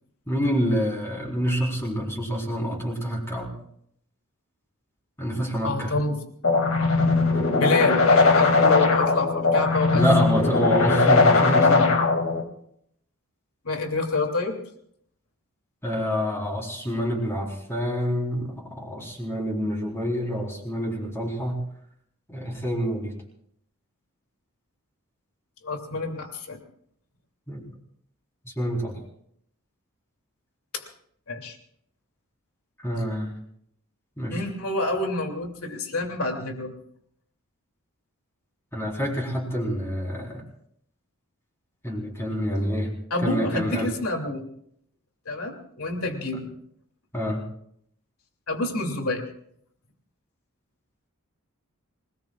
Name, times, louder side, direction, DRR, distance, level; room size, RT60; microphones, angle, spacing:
voice 1, 0.3-3.5 5.2-5.9 9.9-11.9 15.8-21.6 22.3-23.1 27.5-27.6 28.5-29.0 32.8-33.3 34.2-34.4 38.7-40.4 41.8-42.9 43.2-43.9 47.1-47.4, equal, 10° left, -1 dB, 4.1 m, -27 dB
voice 2, 5.6-6.2 7.5-10.0 13.6-14.6 25.6-26.6 30.7-30.8 31.3-31.6 34.3-36.7 43.1-44.4 45.3-46.5 48.5-49.2, left 2 dB, 80° left, 3 dB, 2.9 m, -27 dB
sound 1, 6.4-12.4, left 3 dB, 65° left, 2.4 m, -19 dB
27.5 x 19.5 x 2.4 m, 0.69 s
head